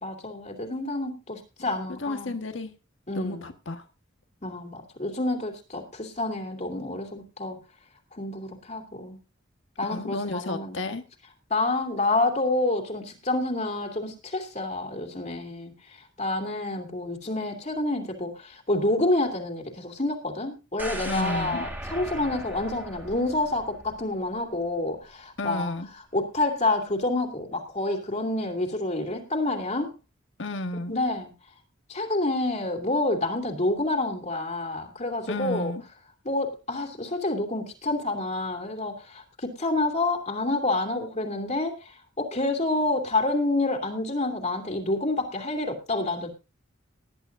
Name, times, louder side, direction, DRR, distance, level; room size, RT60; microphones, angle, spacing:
voice 1, 0.0-2.4 3.1-3.5 4.4-7.6 8.1-9.2 9.8-10.8 11.5-15.7 16.2-29.9 30.9-31.3 31.9-35.7 36.2-46.3, left 2 dB, 35° left, 3 dB, 2.6 m, -28 dB
voice 2, 2.0-2.7 3.1-3.8 9.8-11.0 21.0-21.6 25.4-25.9 30.4-31.0 35.3-35.8, left 2 dB, 70° left, 6 dB, 1.5 m, -32 dB
sound 1, 20.8-24.8 25.1-25.2, right 1 dB, 10° right, 2.2 m, -38 dB
19.5 x 11.0 x 2.6 m, 0.29 s
head